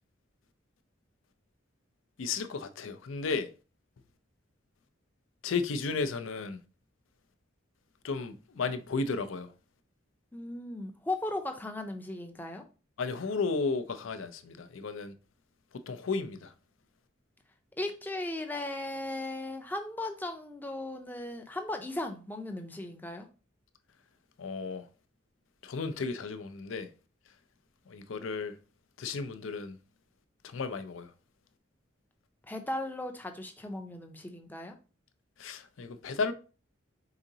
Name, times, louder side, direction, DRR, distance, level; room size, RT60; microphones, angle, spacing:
voice 1, 2.2-3.5 5.4-6.6 8.0-9.5 13.0-15.1 15.9-16.5 24.4-24.8 25.6-26.9 27.9-28.5 29.0-29.8 30.4-31.1 35.4-36.3, left 4 dB, 80° left, 0.5 m, -33 dB
voice 2, 10.3-12.6 17.8-23.3 32.4-34.8, left 2 dB, 10° left, 0.5 m, -37 dB
4.9 x 3.8 x 2.7 m
head